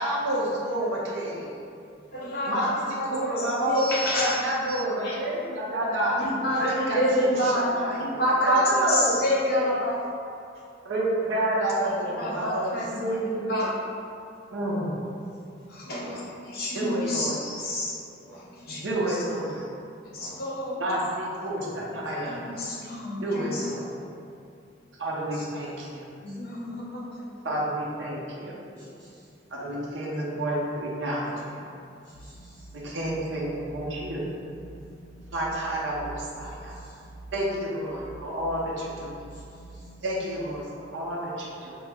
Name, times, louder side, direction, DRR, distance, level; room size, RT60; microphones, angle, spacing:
voice 1, 0.0-1.5 2.5-2.8 3.0-6.3 6.6-7.0 7.3-9.2 9.5-9.7 10.8-13.2 14.5-14.9 16.7-17.4 18.7-19.6 20.8-22.4 23.2-23.8 25.0-26.1 27.4-28.5 29.5-31.6 32.7-34.2 35.3-36.8 37.3-39.1 40.0-41.8, right 1 dB, 70° right, -5 dB, 0.7 m, -29 dB
voice 2, 2.1-2.7 3.0-3.1 3.4-4.3 4.7-4.8 5.0-5.2 6.2-10.0 12.2-13.8 15.7-16.0 16.5-17.9 18.5-19.2 20.0-20.8 22.3-23.7 25.3-25.5 26.2-27.4, equal, 55° left, -6 dB, 0.8 m, -28 dB
voice 3, 15.3-16.3 18.2-18.5 20.0-20.4 21.7-22.5 22.8-22.9 26.2-26.8 28.8-29.3 31.8-32.6 34.7-35.0 36.4-37.1 39.3-39.9, equal, 10° left, -13 dB, 0.5 m, -50 dB
sound 1, 32.1-40.6, right 2 dB, 85° left, 0.5 m, -46 dB
4.4 x 2.0 x 3.4 m, 2.5 s
head